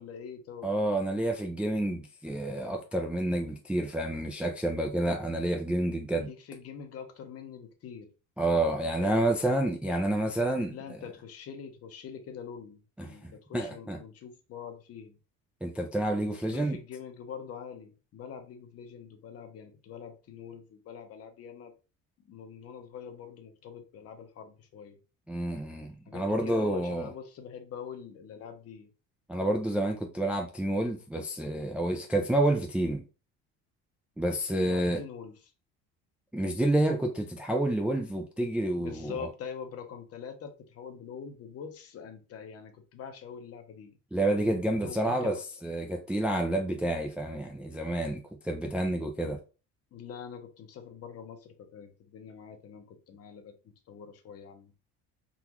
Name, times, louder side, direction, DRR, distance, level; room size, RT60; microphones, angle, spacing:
voice 1, 0.0-0.7 6.2-8.1 9.0-9.2 10.7-15.1 16.5-21.7 22.3-25.0 26.1-28.9 34.6-35.3 38.8-43.9 44.7-45.4 49.9-53.5 53.9-54.7, left 7 dB, 45° left, 0.8 m, -44 dB
voice 2, 0.6-6.3 8.4-11.0 13.0-14.0 15.6-16.8 25.3-27.1 29.3-33.0 34.2-35.0 36.3-39.3 44.1-49.4, right 1 dB, 5° right, 0.3 m, -29 dB
3.8 x 2.4 x 2.9 m
cardioid pair, 130°, 33 cm